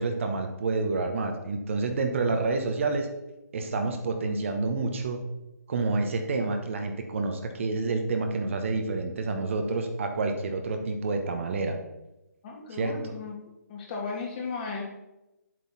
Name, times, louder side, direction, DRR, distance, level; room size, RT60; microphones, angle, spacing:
voice 1, 0.0-3.1 3.5-5.2 5.7-11.8 12.7-13.1, right 3 dB, 45° right, 5 dB, 1.2 m, -28 dB
voice 2, 12.4-13.3 13.7-14.8, left 4 dB, 30° left, -1 dB, 2.1 m, -35 dB
9.1 x 7.7 x 4.2 m, 0.96 s
figure-of-eight pair, 145°, 9 cm